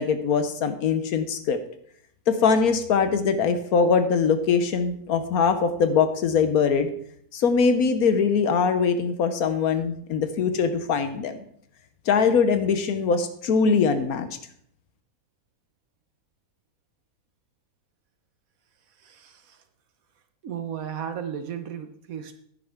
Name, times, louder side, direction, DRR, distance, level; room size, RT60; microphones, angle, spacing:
voice 1, 0.0-1.6 2.3-6.9 7.3-11.4 12.1-14.3, left 5 dB, 70° left, 9 dB, 1.3 m, -22 dB
voice 2, 19.0-19.6 20.4-22.4, right 8 dB, 65° right, 8 dB, 1.3 m, -35 dB
10.5 x 9.8 x 3.5 m, 0.66 s
omnidirectional pair, 1.6 m